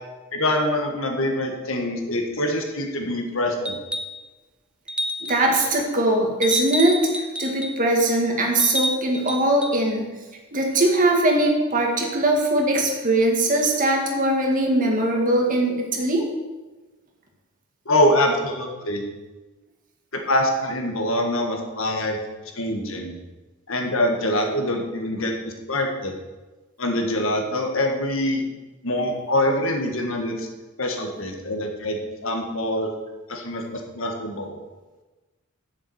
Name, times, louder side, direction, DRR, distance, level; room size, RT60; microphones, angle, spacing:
voice 1, 0.3-3.8 17.9-19.0 20.1-22.2 22.5-23.1 23.7-26.1 26.8-28.4 28.8-30.5 30.8-32.9 33.3-34.6, left 1 dB, 65° left, 2 dB, 1.8 m, -24 dB
sound 1, 3.7-4.2 4.9-5.5 6.4-7.8 8.6-9.8 11.4-11.5, equal, 5° right, 0.6 m, -29 dB
voice 2, 5.2-10.1 10.5-16.3, right 1 dB, 40° right, 0 dB, 2.0 m, -21 dB
7.2 x 7.2 x 8.1 m, 1.2 s
head